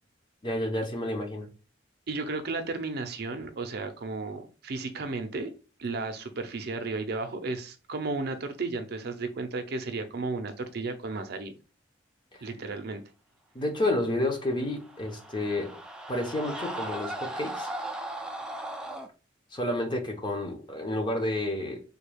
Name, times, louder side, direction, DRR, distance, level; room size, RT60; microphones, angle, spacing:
voice 1, 0.4-1.5 12.3-12.5 13.5-15.8 16.1-17.7 19.5-21.8, left 1 dB, 25° left, 0.8 m, -30 dB
voice 2, 2.1-5.5 5.8-11.5 12.4-13.0, right 3 dB, 60° right, 0.5 m, -34 dB
sound 1, 14.6-19.1, right 1 dB, 5° right, 0.3 m, -37 dB
3.6 x 2.3 x 3.3 m
head